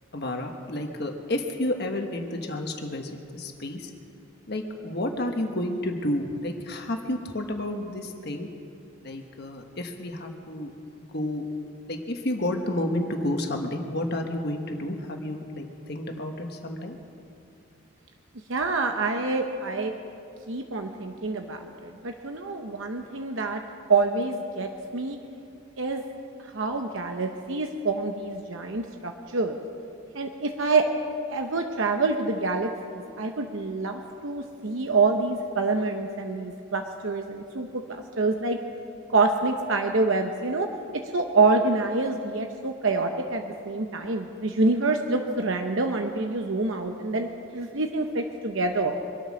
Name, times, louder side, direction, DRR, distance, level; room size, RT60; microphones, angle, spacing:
voice 1, 0.1-3.9 4.5-8.5 9.0-11.5 11.9-17.0, left 1 dB, 50° left, 3 dB, 1.3 m, -31 dB
voice 2, 18.5-19.9 20.5-23.6 23.9-25.2 25.8-26.0 26.4-29.6 30.1-30.9 31.3-38.6 39.1-40.7 40.9-48.9, right 3 dB, 65° right, 4 dB, 0.9 m, -26 dB
24.5 x 9.0 x 6.3 m, 2.5 s
head